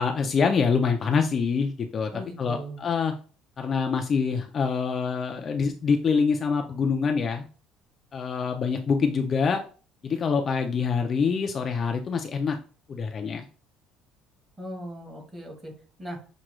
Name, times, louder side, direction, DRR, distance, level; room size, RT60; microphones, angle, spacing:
voice 1, 0.0-2.1 2.4-3.1 3.6-7.5 8.1-9.6 10.0-12.6 12.9-13.5, left 5 dB, 30° left, 4 dB, 0.3 m, -25 dB
voice 2, 2.1-2.8 14.6-15.7 16.0-16.2, equal, 15° right, 2 dB, 1.0 m, -38 dB
5.9 x 2.2 x 3.0 m, 0.38 s
cardioid pair, 165°, 0 cm